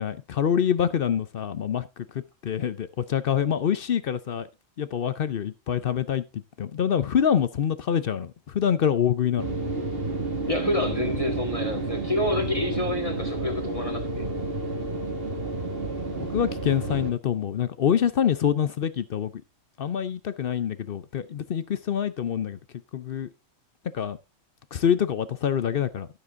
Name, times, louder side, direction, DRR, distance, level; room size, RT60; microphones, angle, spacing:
voice 1, 0.0-4.5 4.8-9.5 16.2-19.3 19.8-22.6 22.9-23.3 23.9-24.2 24.7-26.1, left 8 dB, 55° left, 0.7 m, -26 dB
sound 1, 9.4-17.1, right 3 dB, 45° right, 2.1 m, -30 dB
voice 2, 10.5-14.3, left 2 dB, 25° left, 2.0 m, -28 dB
12.5 x 6.9 x 3.6 m
omnidirectional pair, 1.3 m